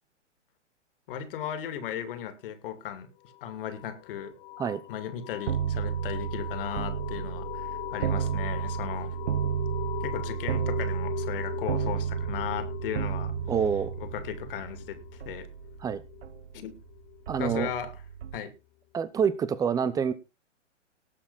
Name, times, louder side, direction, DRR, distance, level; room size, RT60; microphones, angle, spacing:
voice 1, 1.1-3.1 3.4-4.3 4.9-9.1 10.0-13.3 14.0-15.5 16.5-16.8 17.4-17.9 18.3-18.5, left 9 dB, 45° left, 11 dB, 2.7 m, -36 dB
sound 1, 3.2-17.7, left 17 dB, 25° left, 0.6 m, -41 dB
sound 2, 5.5-16.8 17.3-18.4, right 9 dB, 65° right, 0.9 m, -32 dB
voice 2, 13.5-13.9 15.8-16.0 17.3-17.7 18.9-20.1, right 7 dB, 10° right, 16 dB, 0.8 m, -27 dB
18.5 x 7.3 x 4.1 m, 0.29 s
hypercardioid pair, 130°, 36 cm